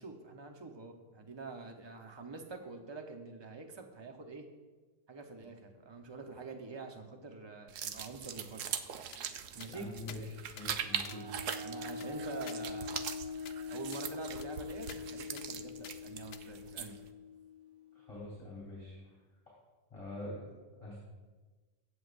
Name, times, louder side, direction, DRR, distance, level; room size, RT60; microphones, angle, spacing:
voice 1, 0.0-4.5 5.1-8.6 9.5-9.9 11.6-13.0 13.7-17.0, right 3 dB, 20° right, 4 dB, 0.9 m, -46 dB
sound 1, 7.7-17.1, right 8 dB, 70° right, 1.0 m, -42 dB
sound 2, 9.1-9.2 9.6-9.7 10.1-10.2 10.6-10.7 11.0-11.2 11.5-13.2 13.4-13.6 13.9-14.1 14.4-14.5 14.9-15.0 15.4-15.5 15.8-15.9 16.3-16.4, left 9 dB, 60° left, 0.7 m, -51 dB
voice 2, 9.7-10.2 10.5-11.3 17.9-19.0 19.9-20.5 20.8-21.0, left 1 dB, 25° left, -5 dB, 3.7 m, -44 dB
sound 3, 10.8-18.3, left 4 dB, 85° right, 1.8 m, -44 dB
23.5 x 8.1 x 2.6 m, 1.3 s
omnidirectional pair, 1.5 m